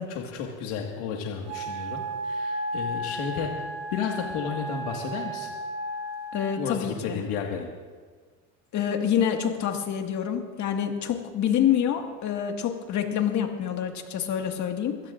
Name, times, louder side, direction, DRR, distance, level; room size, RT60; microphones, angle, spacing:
voice 1, 0.1-5.5 6.6-7.7, left 6 dB, 70° left, 0 dB, 1.9 m, -32 dB
Wind instrument woodwind instrument, 1.5-6.7, right 1 dB, 85° right, 4.5 m, -34 dB
voice 2, 6.3-7.2 8.7-15.0, left 9 dB, 45° left, 4 dB, 1.9 m, -27 dB
24.5 x 16.5 x 2.6 m, 1.5 s
supercardioid pair, 120°, 41 cm